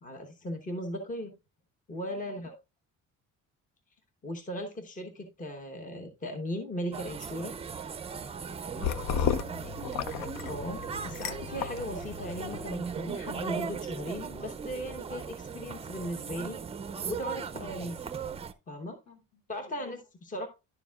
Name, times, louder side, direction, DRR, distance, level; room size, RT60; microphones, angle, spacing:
voice 1, 0.0-1.3 1.9-2.6 4.2-7.7 9.6-9.7 10.4-16.6 17.0-18.0 18.7-19.0 19.5-20.5, equal, 25° left, 1.0 m, -37 dB
voice 2, 2.1-2.4 8.4-9.8 19.1-20.0, left 1 dB, 65° left, 2.1 m, -57 dB
sound 1, 6.9-18.5, right 6 dB, 20° right, 0.4 m, -38 dB
sound 2, 8.8-12.8, left 8 dB, 90° left, 0.6 m, -34 dB
10.5 x 6.9 x 2.3 m
cardioid pair, 135°, 31 cm